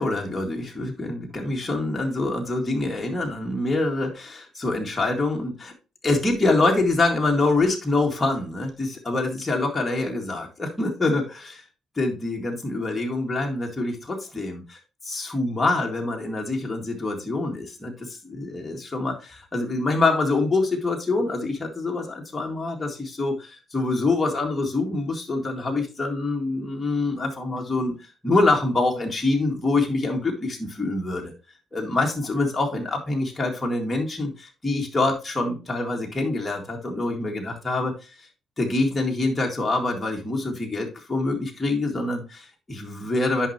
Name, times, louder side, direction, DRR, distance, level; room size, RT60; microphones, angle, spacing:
voice 1, 0.0-5.7 6.0-11.6 12.0-27.9 28.2-31.3 31.7-37.9 38.6-43.5, left 2 dB, 15° left, -1 dB, 1.9 m, -25 dB
10.0 x 5.5 x 2.9 m, 0.31 s
cardioid pair, 125°, 0 cm